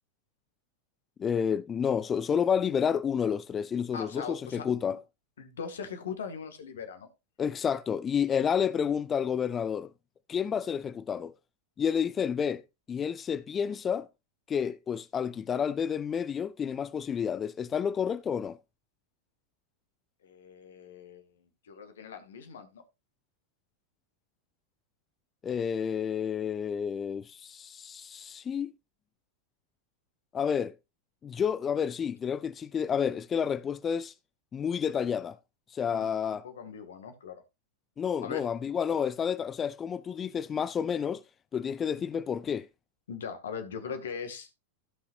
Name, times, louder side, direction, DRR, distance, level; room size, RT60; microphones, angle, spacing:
voice 1, 1.2-5.0 7.4-9.9 10.3-11.3 11.8-12.6 12.9-14.1 14.5-18.6 25.4-28.7 30.3-30.7 31.2-34.1 34.5-35.4 35.7-36.5 38.0-41.2 41.5-42.7, left 7 dB, 20° left, 0.5 m, -30 dB
voice 2, 3.9-5.0 5.4-7.1 20.2-22.8 35.9-36.1 36.4-37.4 38.2-38.4 42.0-42.1 43.1-44.5, left 6 dB, 65° left, 2.0 m, -40 dB
16.0 x 5.7 x 2.5 m
figure-of-eight pair, 90°, 0 cm